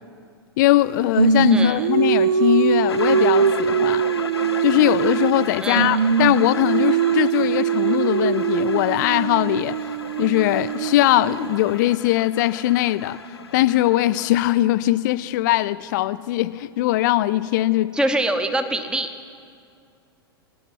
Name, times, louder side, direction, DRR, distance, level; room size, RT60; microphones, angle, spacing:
voice 1, 0.6-4.0 4.6-9.8 10.2-13.2 13.5-18.0, left 15 dB, 50° left, 0.4 m, -20 dB
Singing, 1.2-5.5 5.7-11.7, right 7 dB, 65° right, 0.4 m, -22 dB
voice 2, 1.5-1.9 5.6-6.0 17.9-19.1, right 1 dB, 5° right, 0.9 m, -24 dB
sound 1, 2.9-14.3, left 5 dB, 80° left, 0.7 m, -35 dB
19.0 x 10.5 x 5.9 m
figure-of-eight pair, 95°, 13 cm